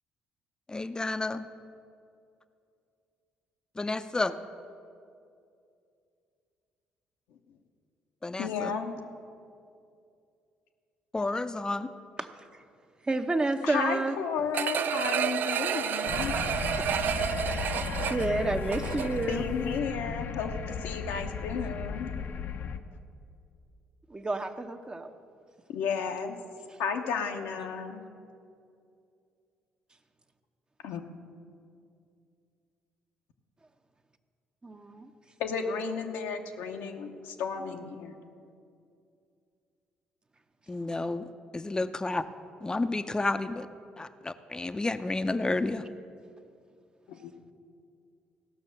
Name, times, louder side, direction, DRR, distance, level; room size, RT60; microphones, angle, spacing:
voice 1, 0.7-1.5 3.8-4.3 8.2-8.7 11.1-11.9 40.7-42.2 42.6-43.7 44.0-45.9, left 2 dB, 20° left, 11 dB, 0.6 m, -31 dB
voice 2, 8.4-9.0 13.6-16.4 19.3-22.1 25.7-26.4 26.8-28.0 30.8-31.1 35.4-38.2 47.1-47.4, left 6 dB, 80° left, 4 dB, 0.9 m, -33 dB
voice 3, 13.0-14.2 18.1-19.4 24.1-25.1 34.6-35.1, right 2 dB, 25° right, 6 dB, 0.9 m, -29 dB
sound 1, 14.5-19.3 19.7-19.8, right 9 dB, 60° right, 0.3 m, -30 dB
sound 2, 16.1-22.8, left 6 dB, 60° left, 0.7 m, -35 dB
15.5 x 6.1 x 6.6 m, 2.5 s
hypercardioid pair, 55°, 4 cm